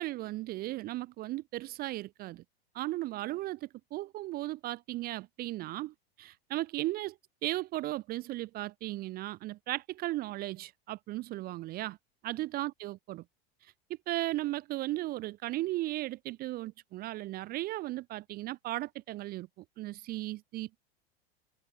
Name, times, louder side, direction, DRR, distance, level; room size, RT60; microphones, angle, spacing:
voice 1, 0.0-2.4 2.7-12.0 12.2-13.2 14.1-19.5 19.8-20.8, right 17 dB, 30° right, 0.4 m, -36 dB
hypercardioid pair, 110°, 32 cm